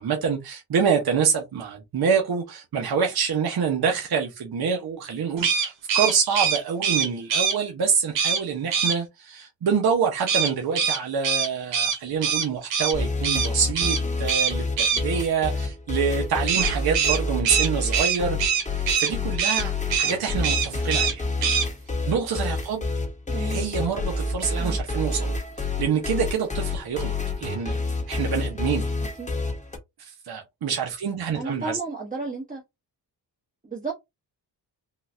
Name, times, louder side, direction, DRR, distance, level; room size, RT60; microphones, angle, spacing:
voice 1, 0.0-18.4 18.7-21.2 22.1-22.8 23.3-27.8 28.1-28.8 30.0-31.8, right 6 dB, 60° right, 0.9 m, -26 dB
sound 1, 5.4-7.6 8.1-8.4 8.7-9.0 10.3-12.9 13.2-13.5 13.7-14.0 14.3-15.0 16.5-19.1 19.4-19.6 19.9-20.1 20.4-21.1 21.4-21.7, right 7 dB, 90° right, 1.1 m, -23 dB
sound 2, 12.9-29.8, left 3 dB, 15° left, 1.1 m, -28 dB
voice 2, 23.3-23.6 24.6-24.8 29.2-29.3 31.3-32.6 33.6-33.9, right 3 dB, 20° right, 1.0 m, -33 dB
3.8 x 2.3 x 2.7 m
cardioid pair, 100°, 43 cm